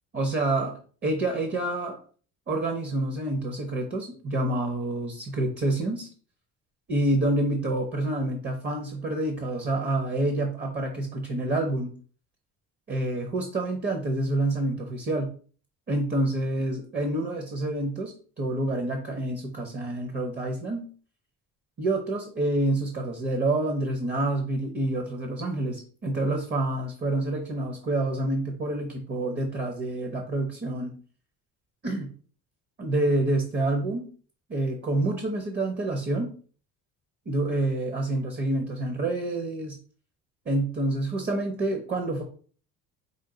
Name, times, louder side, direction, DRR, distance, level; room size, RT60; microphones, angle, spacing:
voice 1, 0.1-2.0 2.5-6.1 6.9-11.9 12.9-15.3 15.9-20.9 21.8-30.9 31.8-32.1 32.8-34.1 34.5-36.3 37.3-39.8 40.5-42.2, right 2 dB, 30° right, 4 dB, 0.7 m, -28 dB
5.1 x 2.4 x 3.8 m, 0.42 s
cardioid pair, 135°, 34 cm